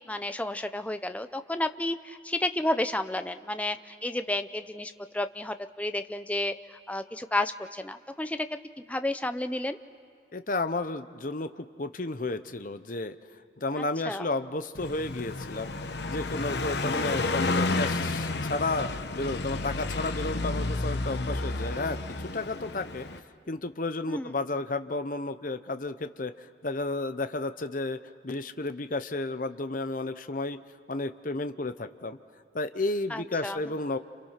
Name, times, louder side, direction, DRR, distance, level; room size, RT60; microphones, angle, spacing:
voice 1, 0.0-8.6 8.9-9.8 13.8-14.3 16.8-17.0 24.1-24.3 33.1-33.6, left 1 dB, 5° left, 9 dB, 0.6 m, -32 dB
voice 2, 10.3-13.2 13.6-15.7 16.1-18.9 19.1-23.1 23.5-30.6 30.9-32.2 32.5-34.0, left 2 dB, 45° left, 10 dB, 0.8 m, -32 dB
Car passing by, 14.7-23.2, left 2 dB, 60° left, 1.1 m, -31 dB
28.5 x 28.5 x 5.9 m, 2.3 s
head